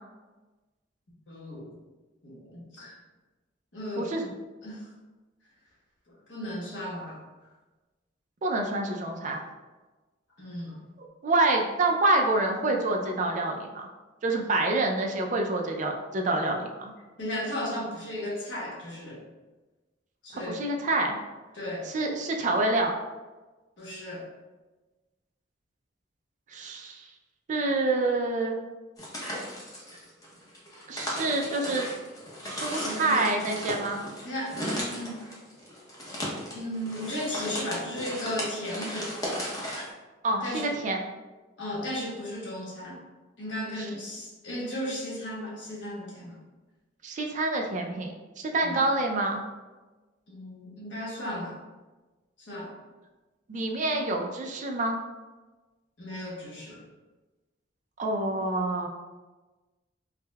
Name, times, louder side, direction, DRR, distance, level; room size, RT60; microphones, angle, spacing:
voice 1, 1.3-1.7 2.2-3.0 3.7-4.1 4.6-4.9 6.3-7.2 10.4-10.7 17.2-19.2 20.2-20.6 21.5-21.9 23.8-24.2 32.8-33.4 34.2-35.2 36.5-39.2 40.4-40.7 41.6-43.0 43.4-46.4 48.6-48.8 50.3-51.6 52.4-52.7 56.0-56.8, left 1 dB, 75° left, -4 dB, 1.0 m, -35 dB
voice 2, 4.0-4.3 8.4-9.4 11.0-13.9 14.2-16.9 20.3-21.2 21.8-22.9 26.5-27.1 27.5-28.6 30.9-31.9 32.4-34.0 40.2-41.0 43.8-43.9 47.0-49.4 53.5-55.0 58.0-58.9, right 2 dB, 40° right, 2 dB, 0.4 m, -27 dB
sound 1, 29.0-39.9, equal, 20° left, 0.7 m, -36 dB
4.8 x 2.1 x 2.2 m, 1.2 s
head